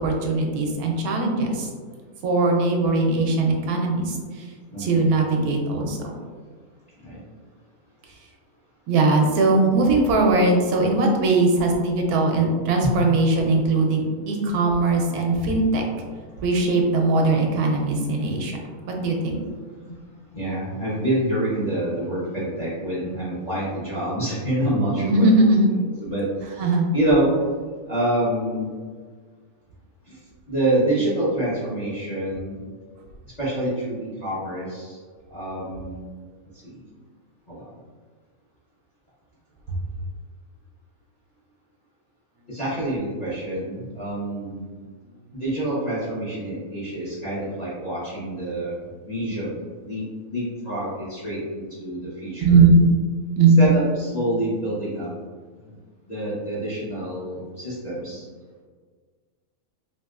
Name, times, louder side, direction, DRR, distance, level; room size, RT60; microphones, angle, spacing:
voice 1, 0.0-1.7 2.2-4.5 4.8-6.0 8.9-15.8 16.4-18.6 18.9-19.4 25.0-25.8 26.6-26.9 52.4-52.9 53.4-53.7, right 2 dB, 85° right, 1 dB, 1.1 m, -20 dB
voice 2, 20.3-25.3 25.8-27.3 27.9-28.7 30.1-30.2 30.5-32.6 33.2-35.0 35.3-36.1 36.5-36.8 37.5-37.7 42.5-44.7 45.4-52.6 53.4-55.1 55.6-55.8 56.1-58.3, right 1 dB, 35° left, -9 dB, 0.7 m, -27 dB
3.0 x 2.9 x 2.3 m, 1.5 s
omnidirectional pair, 1.5 m